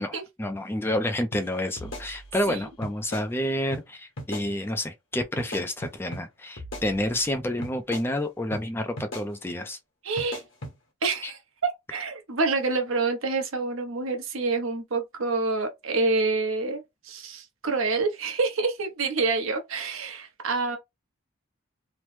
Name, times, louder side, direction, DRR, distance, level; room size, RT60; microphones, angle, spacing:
voice 1, 0.0-9.8 11.2-11.3, left 1 dB, 10° left, 0.3 m, -29 dB
sound 1, 1.3-1.4 1.8-2.5 2.8-3.3 3.7-3.8 4.2-4.5 5.4-6.2 6.6-7.3 7.6-8.1 8.5-8.6 9.0-9.3 10.2-10.7, left 1 dB, 70° left, 1.1 m, -38 dB
voice 2, 10.0-10.4 11.0-20.8, right 3 dB, 85° right, 0.9 m, -27 dB
3.0 x 2.0 x 3.1 m
head